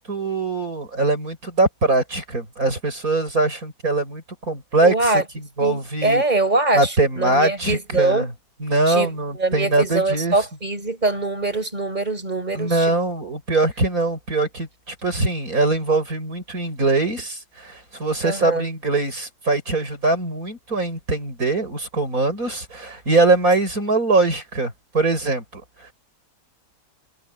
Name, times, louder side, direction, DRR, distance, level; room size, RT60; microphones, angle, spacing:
voice 1, 0.1-5.1 5.6-6.2 6.7-8.3 8.6-10.4 12.5-25.6, right 3 dB, 55° right, 7.0 m, -22 dB
voice 2, 4.8-5.2 5.6-8.3 8.9-12.9 18.2-18.7, right 2 dB, 25° right, 5.6 m, -23 dB
omnidirectional pair, 1.8 m